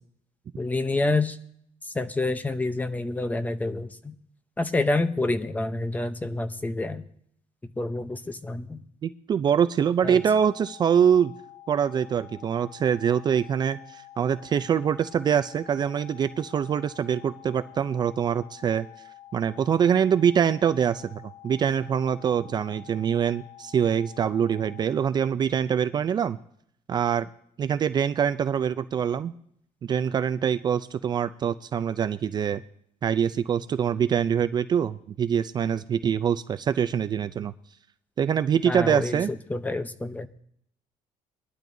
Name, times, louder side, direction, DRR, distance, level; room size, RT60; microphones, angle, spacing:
voice 1, 0.6-1.4 1.9-4.1 4.6-7.0 7.8-8.8 10.0-10.2 38.7-39.2 39.5-40.3, left 2 dB, 10° left, 11 dB, 0.7 m, -27 dB
voice 2, 9.0-11.3 11.7-18.8 19.3-26.4 26.9-27.3 27.6-29.3 29.8-32.6 33.0-37.5 38.2-39.3, right 8 dB, 35° right, 12 dB, 0.4 m, -24 dB
sound 1, 10.0-24.9, left 13 dB, 80° left, 3.7 m, -48 dB
21.0 x 12.0 x 2.7 m, 0.68 s
cardioid pair, 145°, 13 cm